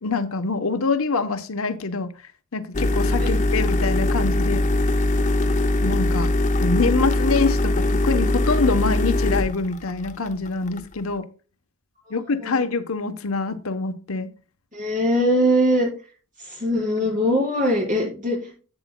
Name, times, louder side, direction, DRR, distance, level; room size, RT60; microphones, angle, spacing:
voice 1, 0.0-2.1 2.5-4.6 5.8-6.3 6.6-11.2 12.1-14.3, left 3 dB, 70° left, 9 dB, 0.9 m, -25 dB
sound 1, 2.7-11.0, left 1 dB, 35° left, 0.7 m, -21 dB
voice 2, 12.1-12.6 14.7-15.9 16.4-18.6, equal, 35° right, -2 dB, 5.4 m, -22 dB
12.0 x 8.1 x 2.2 m, 0.36 s
head